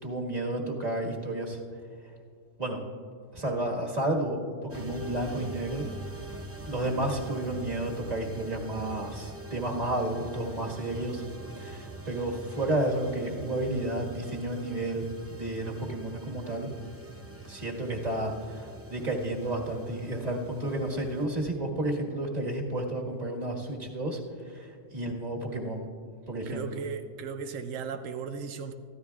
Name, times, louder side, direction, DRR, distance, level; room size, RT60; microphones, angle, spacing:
voice 1, 0.0-1.6 2.6-2.8 3.3-4.4 4.7-5.9 6.6-11.2 11.6-15.0 15.3-16.7 17.4-24.2 24.5-25.8 26.3-26.8, right 1 dB, 30° right, 1.7 m, -31 dB
sound 1, 4.7-21.3, right 2 dB, 15° right, 0.6 m, -43 dB
voice 2, 26.5-28.7, right 6 dB, 90° right, 1.0 m, -36 dB
24.5 x 14.5 x 2.4 m
omnidirectional pair, 1.3 m